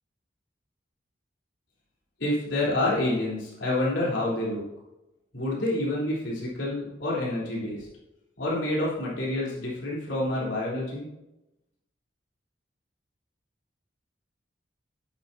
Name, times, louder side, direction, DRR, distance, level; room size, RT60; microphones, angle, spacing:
voice 1, 2.2-4.6 5.3-7.9 8.4-11.1, left 1 dB, 75° left, -6 dB, 3.6 m, -28 dB
11.0 x 9.1 x 2.8 m, 0.94 s
head